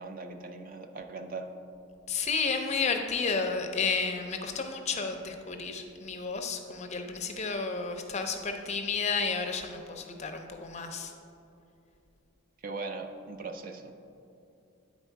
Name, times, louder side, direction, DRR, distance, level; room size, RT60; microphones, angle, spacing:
voice 1, 0.0-1.5 12.6-13.9, right 3 dB, 40° right, 6 dB, 0.3 m, -39 dB
voice 2, 2.1-11.1, left 4 dB, 30° left, 5 dB, 0.5 m, -32 dB
8.9 x 4.1 x 4.5 m, 2.6 s
head